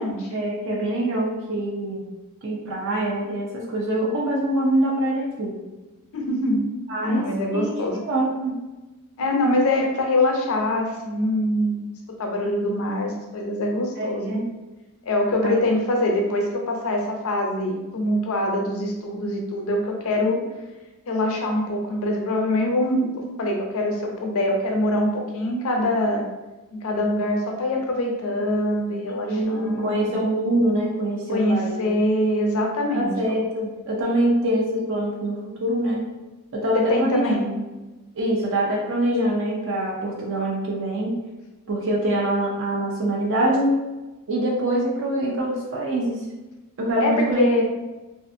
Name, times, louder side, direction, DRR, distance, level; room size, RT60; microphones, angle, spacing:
voice 1, 0.3-2.1 2.4-5.6 6.9-7.3 7.5-8.6 14.0-14.5 15.4-15.6 29.3-31.8 32.9-36.0 36.5-37.4 38.2-41.1 41.7-43.8 44.3-46.2 46.8-47.6, right 1 dB, 60° right, -3 dB, 0.5 m, -24 dB
voice 2, 6.1-6.6 7.0-8.0 9.2-11.9 12.2-14.4 15.1-20.4 21.1-26.2 26.7-30.3 31.3-33.4 36.7-37.5 47.0-47.6, left 1 dB, 65° left, 1 dB, 0.5 m, -24 dB
2.4 x 2.4 x 2.5 m, 1.1 s
head